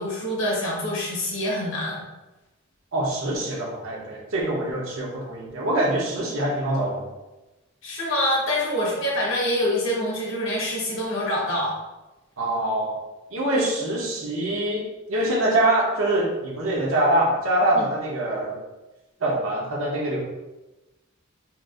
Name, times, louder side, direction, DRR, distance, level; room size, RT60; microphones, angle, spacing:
voice 1, 0.0-2.0 7.8-11.8 17.7-17.9, left 1 dB, 65° left, -4 dB, 1.3 m, -25 dB
voice 2, 2.9-7.1 12.4-13.0 13.3-18.6 19.2-20.2, right 1 dB, 75° right, -3 dB, 1.0 m, -24 dB
4.4 x 2.5 x 2.5 m, 1.1 s
head